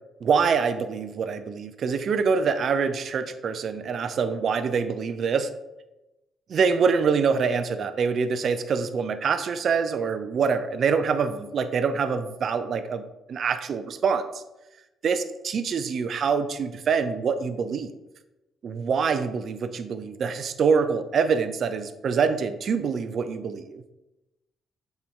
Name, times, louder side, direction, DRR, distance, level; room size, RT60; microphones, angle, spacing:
voice 1, 0.2-5.5 6.5-13.0 13.3-14.4 15.0-17.9 18.6-23.8, right 5 dB, 55° right, 9 dB, 0.5 m, -25 dB
6.7 x 4.5 x 3.7 m, 0.99 s
cardioid pair, 90°, 0 cm